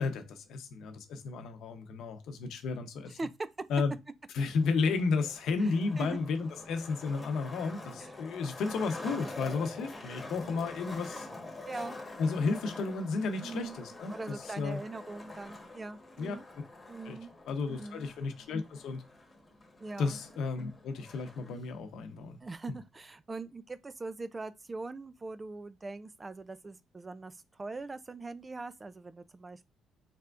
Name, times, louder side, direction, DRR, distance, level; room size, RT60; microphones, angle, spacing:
voice 1, 0.0-3.2 3.7-3.9 4.3-11.3 12.2-14.8 16.2-16.4 17.1-17.2 17.5-19.0 20.0-22.4, left 4 dB, 75° left, 0.8 m, -33 dB
voice 2, 3.1-3.5 5.6-6.2 8.0-8.2 11.6-12.0 13.4-13.8 14.1-16.4 16.9-17.3 17.7-18.0 19.8-20.2 22.4-29.7, right 3 dB, 25° right, 0.4 m, -42 dB
Skateboard, 4.5-21.5, left 2 dB, 20° left, 1.3 m, -46 dB
4.2 x 3.4 x 2.5 m
cardioid pair, 95°, 0 cm